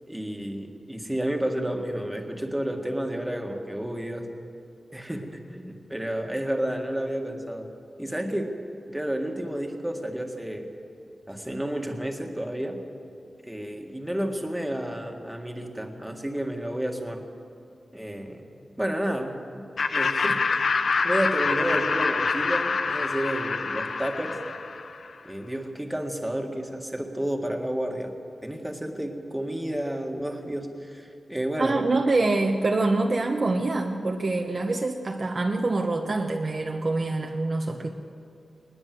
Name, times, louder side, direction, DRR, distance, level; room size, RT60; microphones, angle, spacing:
voice 1, 0.1-4.3 4.9-7.7 8.0-8.5 8.9-10.7 11.3-12.8 13.4-17.2 17.9-18.5 18.8-19.3 19.9-20.7 21.0-24.4 25.2-28.1 28.4-31.8, right 1 dB, 5° right, 3 dB, 1.9 m, -31 dB
Laughter, 19.8-25.1, left 4 dB, 55° left, 0.7 m, -26 dB
voice 2, 31.6-37.9, right 2 dB, 40° right, 2 dB, 1.0 m, -25 dB
20.5 x 20.0 x 7.8 m, 2.5 s
wide cardioid pair, 155°, 0 cm